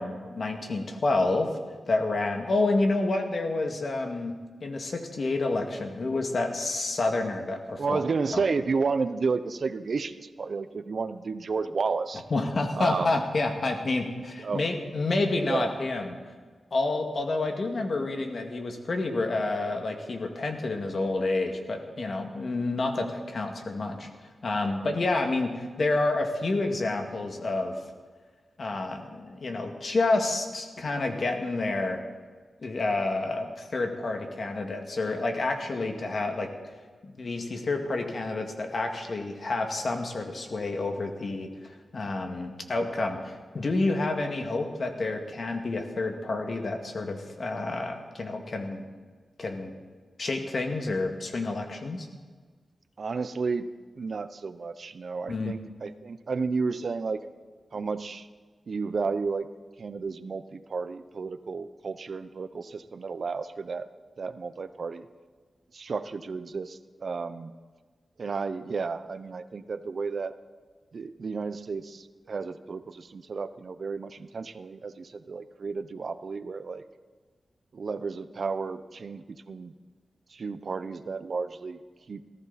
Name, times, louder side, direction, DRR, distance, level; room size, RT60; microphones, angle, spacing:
voice 1, 0.0-1.5 1.9-4.3 4.6-8.0 8.3-8.5 12.3-16.2 16.7-24.1 24.4-27.8 28.6-32.0 32.6-36.5 37.0-48.8 49.4-49.7 50.2-52.1 55.3-55.5, left 2 dB, 60° left, 4 dB, 2.0 m, -29 dB
voice 2, 7.8-12.2 12.8-13.2 14.4-14.7 15.5-15.7 53.0-53.7 54.0-57.2 57.7-58.3 58.7-59.5 59.8-63.9 64.2-65.1 65.7-67.5 68.2-70.3 70.9-76.8 77.7-79.7 80.3-81.8 82.1-82.2, right 4 dB, 65° right, 13 dB, 0.6 m, -32 dB
18.5 x 14.5 x 4.2 m, 1.5 s
cardioid pair, 70°, 0 cm